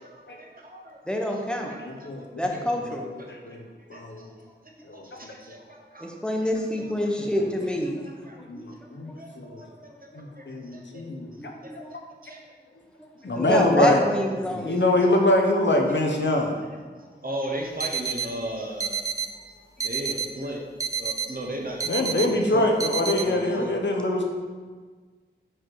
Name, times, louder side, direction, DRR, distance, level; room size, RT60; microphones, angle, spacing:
voice 1, 0.4-1.0 1.3-1.4 1.7-2.3 3.2-3.6 3.9-4.0 5.0-6.2 6.8-6.9 8.0-8.4 9.2-9.9 10.3-10.8 11.6-12.5 14.7-14.9 15.5-15.6 16.3-16.4 17.2-19.0 19.8-20.6 21.0-22.7 23.2-23.8, right 1 dB, 50° right, 0 dB, 1.0 m, -37 dB
voice 2, 1.1-1.7 2.4-3.0 6.0-7.9 8.4-8.6 11.2-11.9 13.3-14.8, left 1 dB, 5° left, 0 dB, 0.9 m, -27 dB
voice 3, 1.8-3.6 3.9-4.2 4.8-5.6 7.2-7.4 8.5-9.7 10.1-11.3 13.2-14.0 14.4-16.6 21.9-24.2, left 1 dB, 75° left, 2 dB, 0.8 m, -25 dB
sound 1, 17.8-18.3 18.8-19.3 19.8-20.3 20.8-21.3 21.8-22.3 22.8-23.2, right 6 dB, 20° right, 0.5 m, -29 dB
4.6 x 4.6 x 4.6 m, 1.5 s
wide cardioid pair, 40°, 19 cm